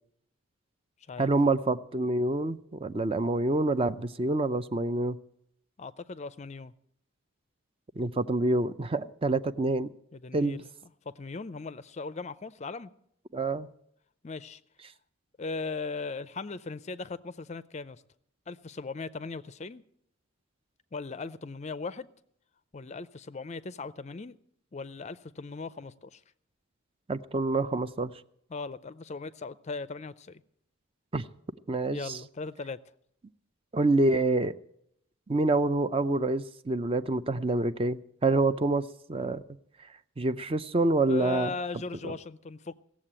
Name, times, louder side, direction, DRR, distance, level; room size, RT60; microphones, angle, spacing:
voice 1, 1.2-5.2 8.0-9.9 10.3-10.6 13.3-13.7 27.1-28.1 31.1-31.2 31.7-32.2 33.7-34.5 35.3-39.4 40.2-41.5, right 2 dB, 25° right, 0.5 m, -27 dB
voice 2, 5.8-6.7 10.1-10.7 11.0-12.9 14.2-14.6 15.4-18.0 18.5-19.8 20.9-22.1 22.7-24.4 24.7-26.2 28.5-30.4 31.9-32.8 41.1-42.7, left 4 dB, 30° left, 0.4 m, -38 dB
17.0 x 7.4 x 8.7 m
head